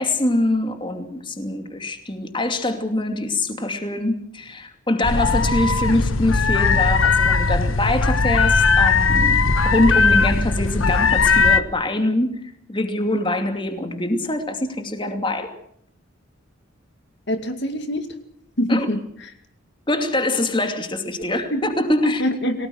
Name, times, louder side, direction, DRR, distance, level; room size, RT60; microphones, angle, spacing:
voice 1, 0.0-12.4 12.7-15.5 18.7-18.9 19.9-22.2, left 1 dB, 25° left, 6 dB, 2.6 m, -24 dB
sound 1, 5.0-11.6, left 4 dB, 85° left, 1.2 m, -18 dB
voice 2, 17.3-18.1 18.6-19.3 21.5-21.6 22.0-22.7, left 1 dB, 60° left, 7 dB, 2.2 m, -24 dB
29.5 x 18.5 x 6.5 m, 0.68 s
head